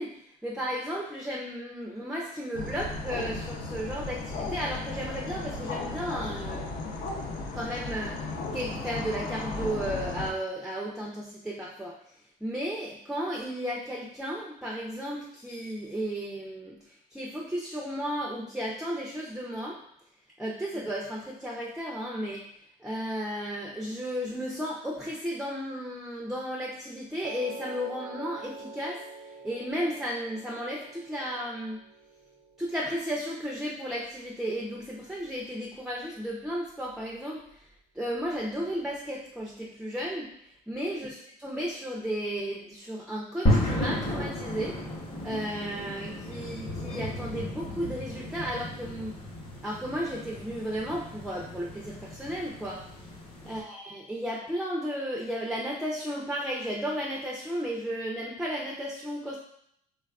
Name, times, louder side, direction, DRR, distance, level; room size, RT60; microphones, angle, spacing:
voice 1, 0.0-6.7 7.5-12.0 12.4-19.8 20.4-22.5 22.8-29.0 29.4-31.8 32.6-37.4 37.9-40.3 40.7-44.8 45.2-49.2 49.6-52.9 53.4-59.4, equal, 5° right, -2 dB, 0.4 m, -34 dB
sound 1, 2.5-10.3, left 3 dB, 55° left, 0.5 m, -35 dB
Piano, 27.2-33.4, right 3 dB, 65° right, 0.4 m, -45 dB
sound 2, 43.5-53.6, left 1 dB, 30° left, 0.8 m, -33 dB
3.3 x 2.3 x 2.3 m, 0.70 s
cardioid pair, 110°, 17 cm